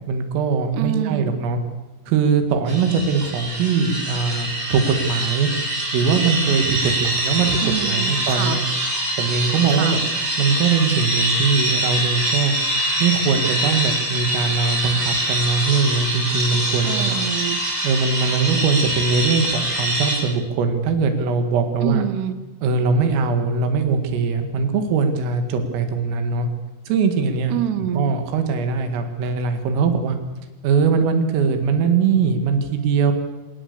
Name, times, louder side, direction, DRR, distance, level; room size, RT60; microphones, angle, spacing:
voice 1, 0.0-1.6 2.1-5.5 5.9-7.6 7.8-8.7 9.2-10.0 10.4-12.5 13.0-17.2 17.8-22.1 22.6-26.5 26.9-27.6 28.0-30.2 30.6-33.1, right 5 dB, 85° right, 7 dB, 4.7 m, -21 dB
voice 2, 0.7-1.3 7.6-8.6 9.7-10.1 16.8-17.6 21.8-22.4 27.5-28.1, right 10 dB, 70° right, 11 dB, 2.9 m, -26 dB
sound 1, 2.7-20.2, right 1 dB, 30° right, 8.3 m, -24 dB
26.0 x 19.0 x 6.9 m, 1.1 s
omnidirectional pair, 5.8 m